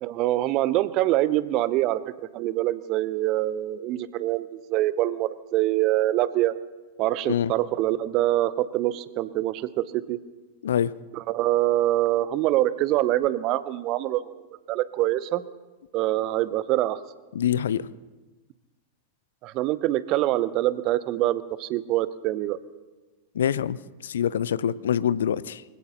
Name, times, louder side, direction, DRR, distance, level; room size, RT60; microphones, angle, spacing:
voice 1, 0.0-6.5 7.0-10.2 11.1-14.2 14.7-15.4 15.9-17.0 19.4-22.6, right 15 dB, 40° right, 16 dB, 0.7 m, -25 dB
voice 2, 17.3-17.9 23.3-25.6, left 9 dB, 65° left, 19 dB, 0.4 m, -25 dB
24.0 x 16.5 x 3.0 m, 1.2 s
figure-of-eight pair, 90°, 0 cm